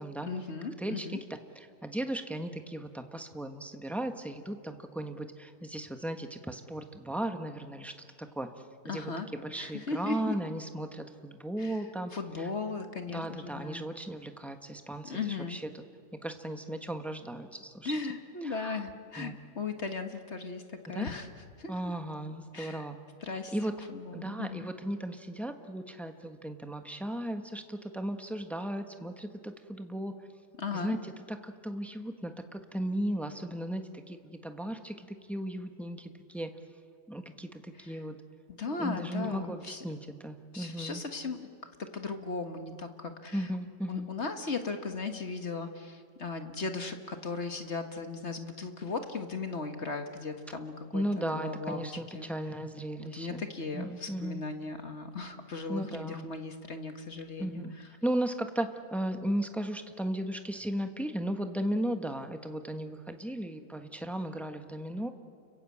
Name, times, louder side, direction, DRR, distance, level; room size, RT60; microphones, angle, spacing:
voice 1, 0.3-1.2 8.9-9.3 9.6-10.3 11.6-11.8 12.1-13.8 15.0-15.6 17.8-21.3 21.6-21.9 22.5-22.9 23.2-23.5 23.9-24.7 30.6-31.0 37.8-38.0 38.6-39.8 40.5-41.5 41.8-43.5 43.9-51.9 52.1-52.3 53.0-57.9, left 4 dB, 45° left, 6 dB, 1.7 m, -37 dB
voice 2, 0.8-8.5 8.8-12.1 12.4-12.5 13.1-15.8 16.2-17.9 18.4-18.8 19.2-19.3 20.9-21.1 21.7-23.0 23.5-23.7 24.1-30.1 30.7-36.5 37.1-38.2 38.8-41.0 43.3-44.1 50.9-53.4 53.7-54.4 55.7-56.3 57.4-57.7 58.0-65.1, right 1 dB, ahead, 6 dB, 1.1 m, -36 dB
30.0 x 22.5 x 8.6 m, 2.3 s
omnidirectional pair, 1.8 m